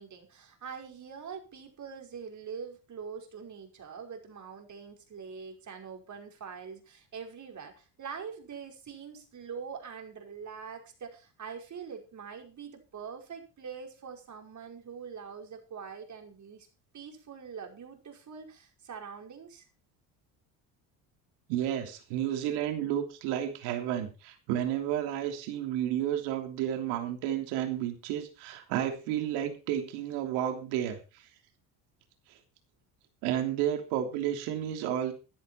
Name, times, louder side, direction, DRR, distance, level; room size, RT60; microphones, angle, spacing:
voice 1, 0.0-16.7 16.9-19.6, right 6 dB, 45° right, 3 dB, 5.2 m, -44 dB
voice 2, 21.5-31.0 33.2-35.1, right 11 dB, 80° right, 6 dB, 3.2 m, -31 dB
15.5 x 11.0 x 4.4 m, 0.33 s
supercardioid pair, 75°, 39 cm